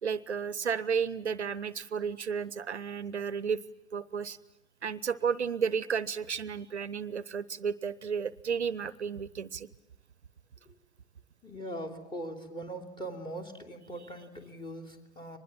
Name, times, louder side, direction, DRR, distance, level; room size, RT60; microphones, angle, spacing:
voice 1, 0.0-3.6 3.9-4.4 4.8-9.7, right 6 dB, 80° right, 20 dB, 0.8 m, -32 dB
voice 2, 11.4-15.4, right 1 dB, 15° left, 6 dB, 3.2 m, -41 dB
24.0 x 20.5 x 8.7 m, 0.96 s
figure-of-eight pair, 90°, 33 cm